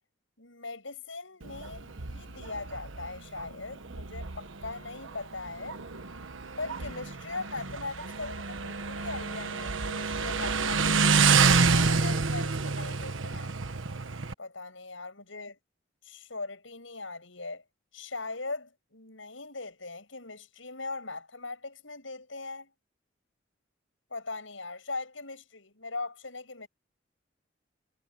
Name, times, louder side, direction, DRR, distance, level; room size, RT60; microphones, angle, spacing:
voice 1, 0.4-5.8 6.6-13.5 14.4-15.5 16.0-17.6 17.9-22.7 24.1-26.7, left 3 dB, 85° left, 7.4 m, -40 dB
Motorcycle, 1.4-14.3, right 4 dB, 85° right, 1.3 m, -28 dB
head